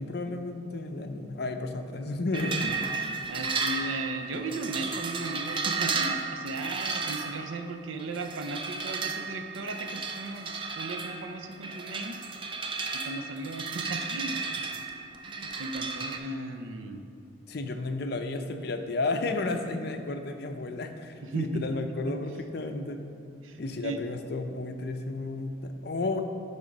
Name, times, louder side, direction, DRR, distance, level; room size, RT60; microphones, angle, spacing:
voice 1, 0.0-2.8 17.5-23.0 23.6-26.2, left 2 dB, 55° left, 7 dB, 0.5 m, -32 dB
sound 1, 2.3-16.2, right 4 dB, 25° right, 0.4 m, -34 dB
voice 2, 3.3-12.2 12.9-14.6 15.2-17.0 21.2-21.5 22.1-22.2 23.4-24.0, right 2 dB, 85° right, 7 dB, 0.6 m, -36 dB
9.8 x 3.6 x 5.3 m, 2.5 s
head